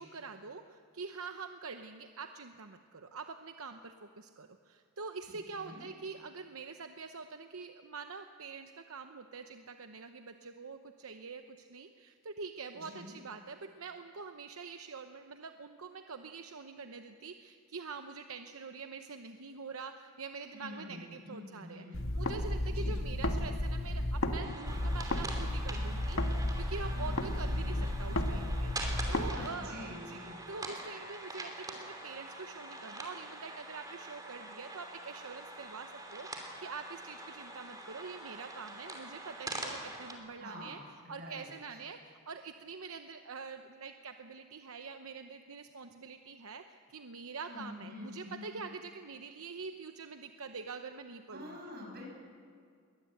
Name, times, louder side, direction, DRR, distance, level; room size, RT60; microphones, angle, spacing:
voice 1, 0.0-40.8 41.1-51.6, right 4 dB, 75° right, 7 dB, 0.9 m, -45 dB
voice 2, 5.3-5.9 12.7-13.2 20.5-22.1 22.7-23.0 26.9-27.8 29.3-30.4 40.4-41.5 47.5-48.6 51.3-52.1, left 1 dB, 50° right, 0 dB, 6.6 m, -47 dB
sound 1, 21.9-24.4 24.7-29.3, left 1 dB, 70° left, 1.6 m, -33 dB
sound 2, 24.4-40.1, right 2 dB, 15° right, 3.0 m, -44 dB
22.5 x 19.0 x 7.9 m, 2.2 s
head